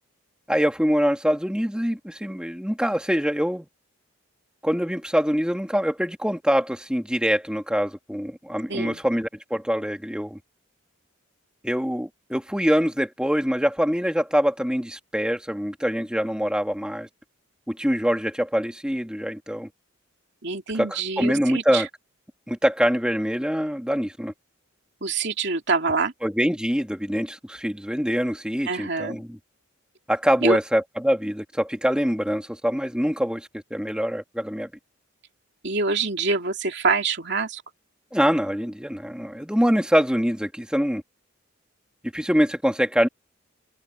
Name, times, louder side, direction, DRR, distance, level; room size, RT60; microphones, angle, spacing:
voice 1, 0.5-3.7 4.6-10.4 11.6-17.1 17.7-19.7 20.7-21.9 22.5-24.3 26.2-29.4 30.1-34.7 38.1-41.0 42.0-43.1, equal, 5° right, 2.3 m, -24 dB
voice 2, 8.7-9.0 20.4-21.8 25.0-26.1 28.7-29.2 30.4-30.6 35.6-37.6, right 4 dB, 55° right, 2.8 m, -25 dB
head